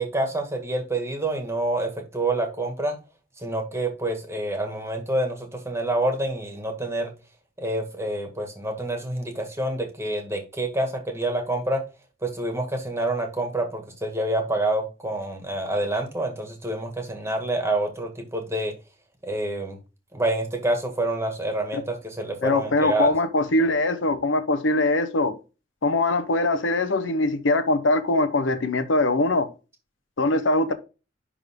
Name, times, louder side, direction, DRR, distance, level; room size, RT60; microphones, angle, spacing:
voice 1, 0.0-3.0 3.4-7.1 7.6-11.8 12.2-18.7 19.2-19.8 20.1-23.1, right 1 dB, 15° right, 1.9 m, -27 dB
voice 2, 22.4-25.4 25.8-29.5 30.2-30.7, left 2 dB, 75° left, 0.9 m, -22 dB
11.0 x 3.7 x 3.6 m
head